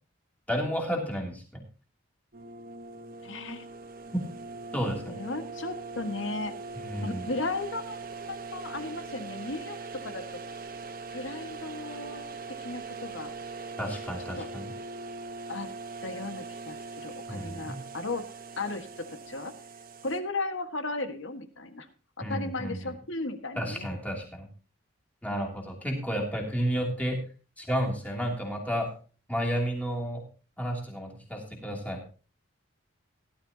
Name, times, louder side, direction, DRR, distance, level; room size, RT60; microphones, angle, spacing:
voice 1, 0.5-1.6 4.7-5.1 6.7-7.3 13.8-14.7 17.3-17.8 22.2-22.8 23.5-24.5 25.2-27.2 27.6-28.9 29.3-30.2 30.6-32.0, equal, 5° left, 0 dB, 3.0 m, -31 dB
sound 1, 2.3-20.2, right 4 dB, 45° right, 1.2 m, -41 dB
voice 2, 3.2-3.7 5.0-6.5 7.0-10.2 11.1-13.3 14.4-14.5 15.5-15.7 16.0-18.3 18.6-19.5 20.0-21.9 22.2-23.9, left 2 dB, 65° left, 8 dB, 1.7 m, -35 dB
17.5 x 11.5 x 2.9 m, 0.36 s
head